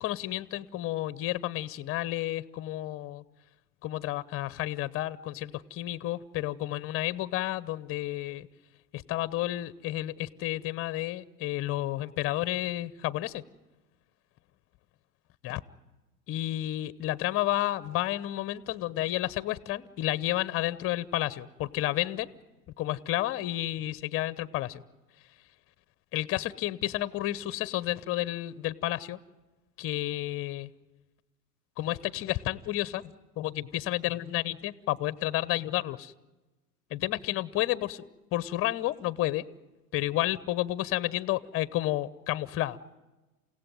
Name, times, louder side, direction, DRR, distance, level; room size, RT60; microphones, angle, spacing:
voice 1, 0.0-3.2 3.8-8.5 8.9-13.4 15.4-15.6 16.3-22.3 22.8-24.8 26.1-29.2 29.8-30.7 31.8-36.1 36.9-38.0 38.3-39.5 39.9-42.8, left 15 dB, 30° left, 20 dB, 0.9 m, -31 dB
28.5 x 17.0 x 9.2 m, 1.1 s
hypercardioid pair, 100°, 46 cm